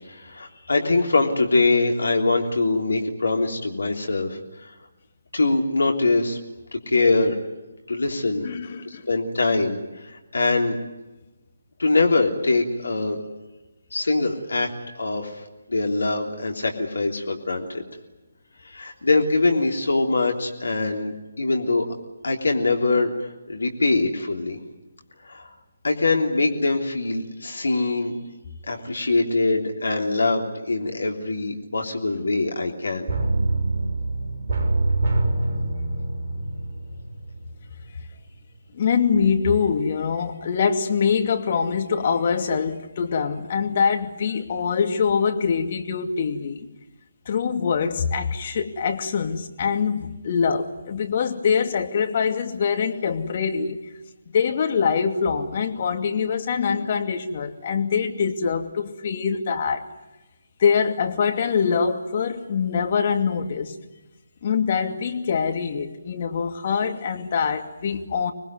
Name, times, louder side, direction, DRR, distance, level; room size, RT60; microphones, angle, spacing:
voice 1, 0.1-4.7 5.3-6.4 6.9-7.4 7.9-8.5 8.8-10.8 11.8-13.2 13.9-15.3 15.7-17.7 18.6-21.8 22.2-23.1 23.5-24.6 25.2-25.4 25.8-28.2 28.7-33.0, left 3 dB, 70° left, 3.4 m, -23 dB
voice 2, 8.4-9.1 38.7-46.7 47.3-53.8 54.3-59.9 60.6-63.7 64.4-68.3, left 6 dB, 40° left, 2.5 m, -24 dB
sound 1, 33.1-37.8 38.1-38.2, right 2 dB, 35° right, 6.9 m, -25 dB
26.5 x 20.0 x 9.6 m
figure-of-eight pair, 145°, 0 cm